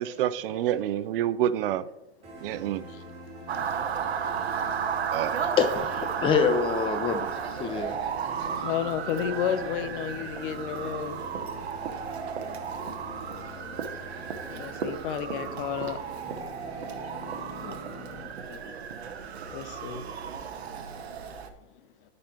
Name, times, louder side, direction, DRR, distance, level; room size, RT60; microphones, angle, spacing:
voice 1, 0.0-1.8 2.4-2.8 5.1-5.4, right 11 dB, 60° right, 14 dB, 0.5 m, -27 dB
sound 1, 2.2-18.2, equal, 20° right, 2.4 m, -44 dB
Motor vehicle (road) / Siren, 3.5-21.5, right 7 dB, 90° right, 0.9 m, -34 dB
voice 2, 5.6-7.3 7.6-8.0 17.6-17.8, left 6 dB, 15° left, 9 dB, 0.5 m, -26 dB
voice 3, 8.6-11.2 11.9-12.0 13.4-13.5 13.8-13.9 14.5-16.0 18.5-18.8 19.5-20.0, left 9 dB, 55° left, 11 dB, 0.6 m, -32 dB
10.5 x 5.3 x 2.9 m, 0.93 s
hypercardioid pair, 125°, 31 cm